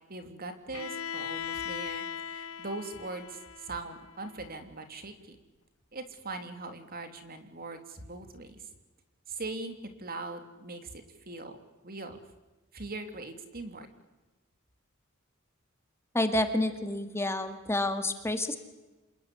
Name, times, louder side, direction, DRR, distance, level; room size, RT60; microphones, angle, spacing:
voice 1, 0.1-5.4 5.9-8.6 9.3-11.6 11.8-12.2 12.7-13.9, right 3 dB, 45° right, 7 dB, 3.1 m, -41 dB
Bowed string instrument, 0.7-4.6, left 8 dB, 85° left, 1.3 m, -39 dB
voice 2, 16.1-18.6, left 1 dB, 15° left, 7 dB, 2.0 m, -29 dB
28.0 x 21.0 x 10.0 m, 1.1 s
head